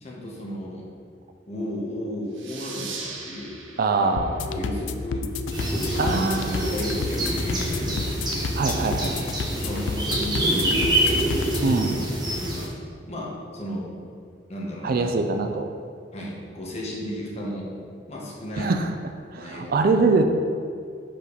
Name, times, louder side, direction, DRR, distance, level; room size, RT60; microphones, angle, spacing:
voice 1, 0.0-0.9 1.5-3.5 4.0-5.3 5.7-8.0 9.5-11.2 11.7-11.9 12.3-12.7 13.1-13.9 14.5-15.3 16.1-17.7 18.1-18.9 19.4-20.0, left 1 dB, 35° left, -4 dB, 1.2 m, -34 dB
sound 1, 2.3-5.6, right 4 dB, 80° right, 0.8 m, -40 dB
voice 2, 3.8-4.5 6.0-6.7 8.5-9.1 11.6-12.0 14.8-15.7 18.6-18.9 19.3-20.2, right 3 dB, 50° right, 6 dB, 0.4 m, -23 dB
sound 2, 4.2-11.8, left 4 dB, 75° left, 0.3 m, -31 dB
sound 3, 5.5-12.7, right 1 dB, 20° right, 1.1 m, -26 dB
5.2 x 5.1 x 4.0 m, 2.3 s
head